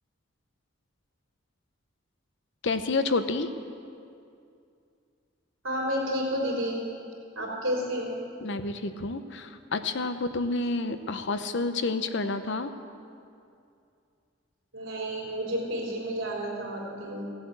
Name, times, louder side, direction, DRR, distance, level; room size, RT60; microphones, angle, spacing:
voice 1, 2.6-3.5 8.4-12.7, left 3 dB, 60° left, 10 dB, 0.7 m, -29 dB
voice 2, 5.6-6.8 7.4-8.2 14.7-17.3, equal, 85° right, -2 dB, 3.7 m, -31 dB
15.5 x 8.0 x 8.0 m, 2.4 s
head